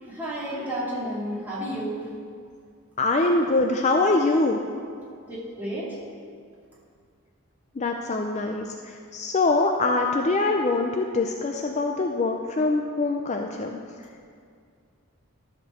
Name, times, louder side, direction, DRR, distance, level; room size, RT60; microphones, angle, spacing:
voice 1, 0.0-2.1 5.3-6.0, right 1 dB, 10° right, -8 dB, 2.2 m, -31 dB
voice 2, 3.0-4.6 7.7-13.8, left 3 dB, 30° left, 3 dB, 0.4 m, -24 dB
13.0 x 4.5 x 6.4 m, 2.2 s
head